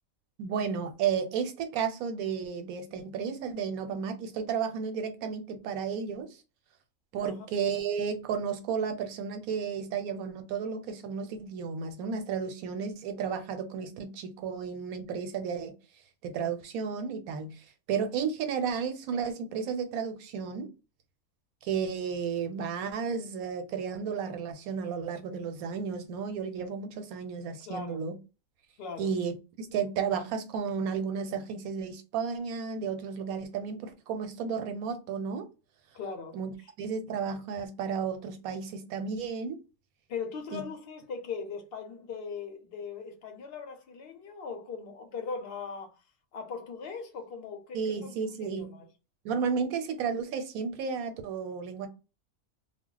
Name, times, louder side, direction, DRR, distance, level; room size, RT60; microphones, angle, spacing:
voice 1, 0.4-6.3 7.1-15.7 16.2-17.5 17.9-20.7 21.6-28.2 29.0-35.5 36.3-36.5 36.8-39.6 40.5-40.6 47.7-48.7 49.2-51.9, right 6 dB, 85° right, 1.1 m, -33 dB
voice 2, 27.7-28.0 28.8-29.1 35.9-36.4 40.1-46.0 46.3-48.1 48.4-48.9, left 5 dB, 55° left, 0.7 m, -39 dB
2.3 x 2.0 x 3.7 m
omnidirectional pair, 1.5 m